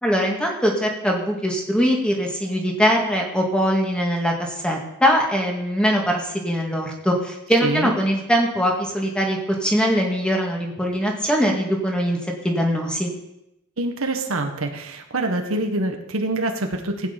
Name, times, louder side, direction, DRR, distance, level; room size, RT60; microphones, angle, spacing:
voice 1, 0.0-12.2 12.4-13.1, equal, 5° left, 0 dB, 2.0 m, -22 dB
voice 2, 7.6-7.9 13.8-17.1, right 2 dB, 75° right, 4 dB, 1.6 m, -25 dB
16.0 x 9.0 x 5.3 m, 0.86 s
head